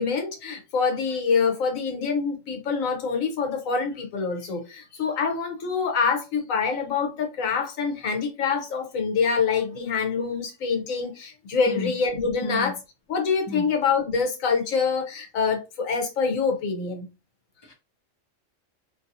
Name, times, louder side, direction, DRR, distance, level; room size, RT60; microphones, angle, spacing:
voice 1, 0.0-12.7 13.1-17.1, left 5 dB, 80° left, 1.3 m, -25 dB
voice 2, 12.4-12.7 13.5-13.7 17.6-17.7, left 2 dB, 45° left, 0.3 m, -32 dB
2.9 x 2.6 x 2.7 m
omnidirectional pair, 1.4 m